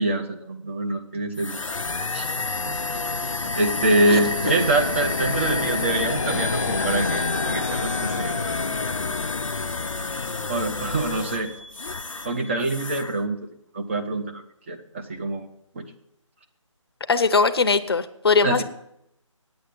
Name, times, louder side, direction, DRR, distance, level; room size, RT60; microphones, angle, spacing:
voice 1, 0.0-1.5 2.1-2.3 2.6-2.9 3.5-8.5 8.8-8.9 10.5-11.5 12.2-13.4 13.7-14.4 14.7-15.5 15.7-15.8 18.4-18.6, right 2 dB, 25° right, 4 dB, 0.8 m, -25 dB
sound 1, 1.4-12.4 12.6-13.1, left 3 dB, 80° left, 0.7 m, -29 dB
sound 2, 1.8-11.6, left 4 dB, 30° left, 0.4 m, -32 dB
sound 3, 6.1-12.8, right 1 dB, 65° right, 5.2 m, -47 dB
voice 2, 17.1-18.6, left 4 dB, 50° left, 11 dB, 0.8 m, -20 dB
9.3 x 8.2 x 8.5 m, 0.79 s
figure-of-eight pair, 160°, 17 cm